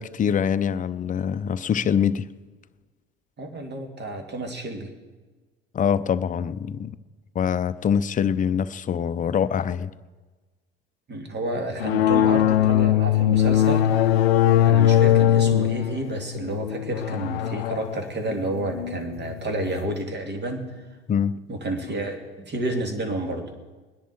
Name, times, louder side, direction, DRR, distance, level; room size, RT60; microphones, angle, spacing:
voice 1, 0.0-2.3 5.7-6.9 7.3-9.9 21.1-21.3, left 8 dB, 25° left, 13 dB, 0.6 m, -24 dB
voice 2, 3.4-4.9 11.1-14.2 14.6-20.6 21.5-23.5, right 2 dB, 35° right, 4 dB, 2.4 m, -30 dB
sound 1, 11.8-19.9, left 11 dB, 90° left, 0.5 m, -21 dB
20.0 x 10.5 x 4.5 m, 1.3 s
hypercardioid pair, 65°, 29 cm